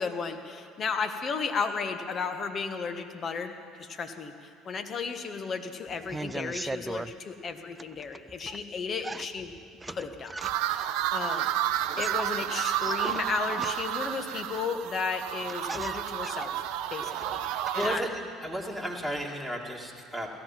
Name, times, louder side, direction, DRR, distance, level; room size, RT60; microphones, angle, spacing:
voice 1, 0.0-9.5 9.9-10.4 10.7-11.5 12.0-16.5 16.9-18.0, left 5 dB, 45° left, 7 dB, 1.4 m, -34 dB
sound 1, 5.9-7.1 7.7-8.6 9.0-10.8 11.8-14.1 15.0-15.1 15.3-18.2 18.5-19.2, right 2 dB, 15° right, 0.4 m, -40 dB
sound 2, 10.4-18.0, right 11 dB, 70° right, 0.5 m, -31 dB
voice 2, 17.3-18.1 18.4-20.3, equal, 5° left, -2 dB, 2.2 m, -34 dB
17.0 x 14.0 x 5.9 m, 2.3 s
hypercardioid pair, 65°, 0 cm